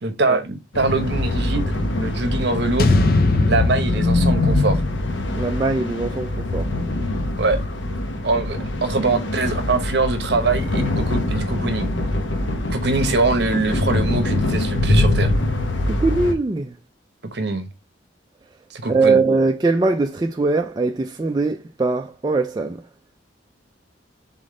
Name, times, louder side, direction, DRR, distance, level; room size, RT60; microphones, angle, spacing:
voice 1, 0.0-2.9 3.5-4.8 7.4-7.6 8.2-11.9 12.7-15.3 17.3-17.7 18.7-19.2, right 3 dB, 60° right, 0.8 m, -23 dB
sound 1, 0.7-16.3, left 2 dB, 75° left, 0.9 m, -23 dB
sound 2, 2.8-7.0, left 2 dB, 50° left, 0.5 m, -22 dB
voice 2, 5.4-6.7 15.9-16.7 18.9-22.8, right 3 dB, 20° right, 0.3 m, -21 dB
3.8 x 3.5 x 3.6 m
head